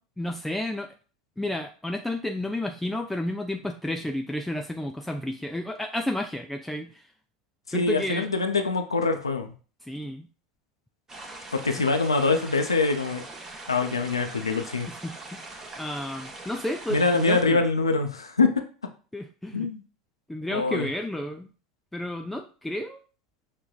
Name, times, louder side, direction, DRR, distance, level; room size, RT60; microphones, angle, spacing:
voice 1, 0.2-0.9 1.4-7.1 7.7-8.3 9.8-10.3 14.9-17.7 19.1-19.7 20.3-21.5 21.9-23.0, left 1 dB, 5° left, 3 dB, 0.3 m, -32 dB
voice 2, 7.7-9.5 11.5-13.2 13.7-14.9 16.9-18.5 19.5-19.8 20.5-20.9, left 3 dB, 90° left, 5 dB, 0.4 m, -24 dB
sound 1, 11.1-17.4, right 2 dB, 20° right, 0.7 m, -42 dB
5.7 x 2.1 x 2.3 m, 0.37 s
figure-of-eight pair, 80°, 3 cm